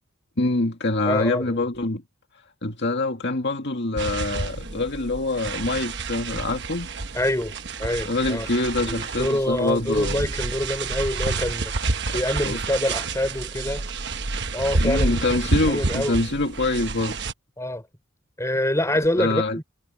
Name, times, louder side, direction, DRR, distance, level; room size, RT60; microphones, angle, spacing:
voice 1, 0.4-2.0 2.6-6.9 8.1-10.2 12.1-12.2 12.4-12.6 14.8-17.2 19.2-19.6, left 2 dB, 55° left, 2.1 m, -25 dB
voice 2, 1.0-1.7 7.1-8.5 8.8-13.9 14.5-15.2 15.5-16.2 17.6-17.9 18.4-19.6, left 1 dB, 15° left, 4.4 m, -26 dB
sound 1, 4.0-17.3, right 3 dB, 55° right, 1.2 m, -29 dB
head